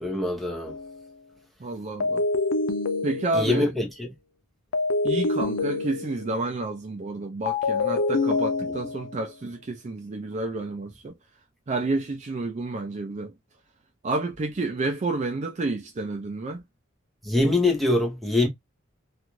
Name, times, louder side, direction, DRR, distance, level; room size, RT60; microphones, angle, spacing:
voice 1, 0.0-0.7 3.3-4.1 17.2-18.5, left 2 dB, ahead, 0.8 m, -24 dB
sound 1, 0.7-1.0 2.0-3.7 4.7-6.4 7.5-9.2, left 3 dB, 90° left, 0.5 m, -26 dB
voice 2, 1.6-2.2 3.0-3.7 5.0-11.1 11.7-13.3 14.0-16.6, right 2 dB, 35° right, 0.4 m, -30 dB
2.5 x 2.4 x 2.9 m
head